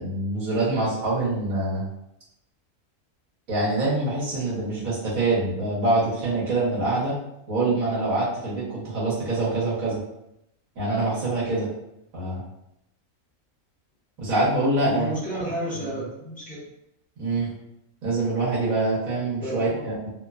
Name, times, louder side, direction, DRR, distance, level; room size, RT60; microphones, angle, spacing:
voice 1, 0.0-1.8 3.5-7.2 7.5-10.0 10.7-11.7 12.1-12.4 14.2-15.1 15.7-15.8 17.2-17.5 18.0-20.1, right 2 dB, 85° right, -8 dB, 1.6 m, -25 dB
voice 2, 14.8-16.7 19.4-19.9, right 1 dB, 10° left, -8 dB, 0.6 m, -32 dB
3.1 x 2.1 x 2.4 m, 0.82 s
omnidirectional pair, 1.4 m